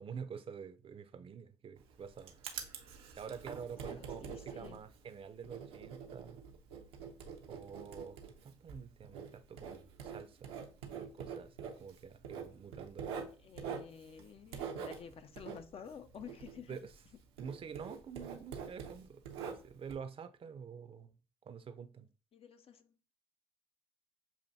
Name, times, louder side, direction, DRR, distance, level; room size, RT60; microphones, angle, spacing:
voice 1, 0.0-2.4 3.2-6.4 7.5-10.5 11.0-13.3 16.7-16.8 17.4-21.2 21.5-22.1, right 6 dB, 45° right, 0.6 m, -48 dB
Writing, 1.8-17.1 17.4-19.9, right 6 dB, 90° right, 0.8 m, -46 dB
voice 2, 3.8-4.8 13.4-16.9 17.9-18.0 22.3-23.1, left 7 dB, 45° left, 0.5 m, -51 dB
7.0 x 2.5 x 2.7 m
hypercardioid pair, 60°, 14 cm